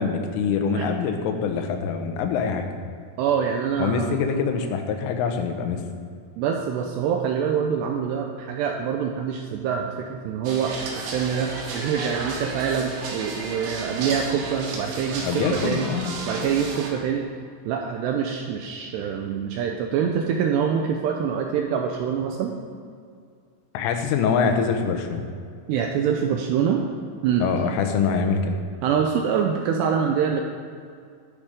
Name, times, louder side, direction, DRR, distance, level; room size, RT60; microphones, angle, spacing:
voice 1, 0.0-2.7 3.8-5.8 15.2-16.1 23.8-25.2 27.4-28.6, left 6 dB, 90° left, 5 dB, 3.6 m, -24 dB
voice 2, 3.2-4.2 6.4-15.9 16.3-17.3 17.6-22.5 25.7-26.8 27.2-27.5 28.8-30.4, right 7 dB, 85° right, 3 dB, 2.5 m, -25 dB
sound 1, 10.5-16.9, right 3 dB, 70° right, 3.7 m, -33 dB
11.5 x 10.5 x 5.1 m, 2.2 s
omnidirectional pair, 5.6 m